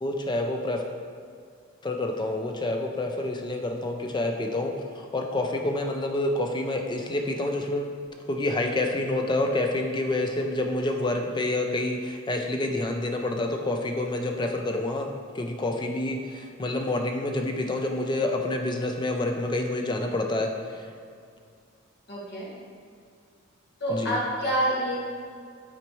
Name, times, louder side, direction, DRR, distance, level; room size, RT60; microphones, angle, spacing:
voice 1, 0.0-0.8 1.8-8.0 8.3-20.9 23.9-24.2, left 2 dB, 20° left, 3 dB, 0.4 m, -28 dB
voice 2, 22.1-22.5 23.8-24.9, equal, 50° left, -6 dB, 1.5 m, -27 dB
7.5 x 4.1 x 3.1 m, 2.2 s
head